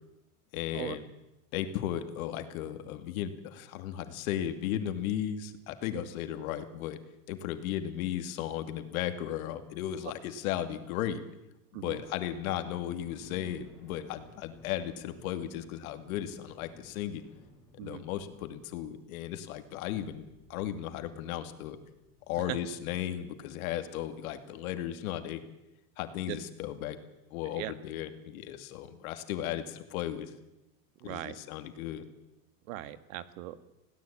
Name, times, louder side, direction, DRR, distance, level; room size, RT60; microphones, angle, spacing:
voice 1, 0.5-1.0 1.5-7.0 7.3-11.2 11.8-17.2 17.8-20.2 20.5-21.8 22.3-25.4 26.0-27.0 27.3-30.3 31.0-32.1, left 11 dB, 70° left, 8 dB, 2.5 m, -35 dB
sound 1, 12.0-24.4, left 1 dB, 5° left, 7.9 m, -59 dB
voice 2, 31.0-31.4 32.7-33.6, right 14 dB, 60° right, 13 dB, 1.7 m, -39 dB
21.5 x 17.0 x 8.7 m, 0.91 s
supercardioid pair, 175°, 44 cm